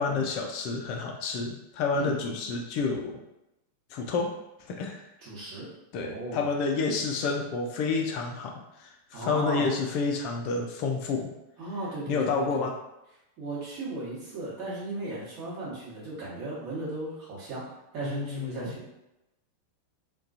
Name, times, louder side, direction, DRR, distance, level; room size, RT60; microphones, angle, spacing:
voice 1, 0.0-3.2 3.9-4.3 4.7-5.0 5.9-11.3 12.1-12.8 18.0-18.8, left 4 dB, 45° left, 2 dB, 0.3 m, -29 dB
voice 2, 5.2-5.7 6.0-6.5 9.1-9.7 11.6-12.7 13.4-17.6 17.9-18.8, right 2 dB, 40° right, -7 dB, 1.1 m, -36 dB
2.3 x 2.2 x 2.5 m, 0.91 s
figure-of-eight pair, 90°, 0 cm